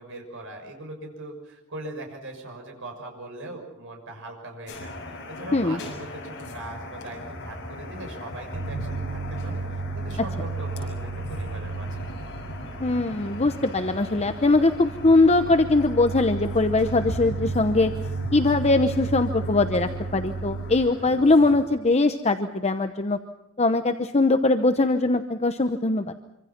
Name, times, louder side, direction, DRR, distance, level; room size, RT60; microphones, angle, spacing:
voice 1, 0.0-4.9 5.3-12.1 20.9-21.1, right 2 dB, 60° right, 2 dB, 6.5 m, -40 dB
sound 1, 4.7-21.7, left 1 dB, 55° left, 6.8 m, -39 dB
sound 2, 8.5-20.9, right 4 dB, 85° right, 0.9 m, -34 dB
voice 2, 12.8-17.9 18.3-23.2 23.6-26.1, left 2 dB, 30° left, 7 dB, 0.9 m, -21 dB
26.0 x 25.5 x 6.0 m, 0.86 s
head